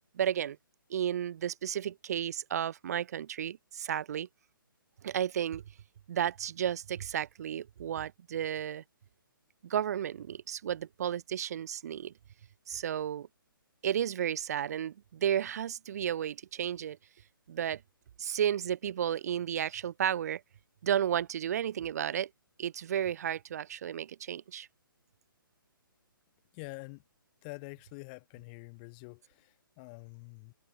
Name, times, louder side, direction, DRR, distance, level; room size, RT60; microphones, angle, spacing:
voice 1, 0.1-0.6 0.9-4.3 5.0-5.6 6.1-8.8 9.6-12.1 12.7-13.3 13.8-17.0 17.5-17.8 18.2-20.4 20.8-22.3 22.6-24.7, right 9 dB, 45° right, 0.8 m, -33 dB
voice 2, 26.5-27.0 27.4-30.5, left 31 dB, 25° left, 0.7 m, -46 dB
figure-of-eight pair, 135°, 12 cm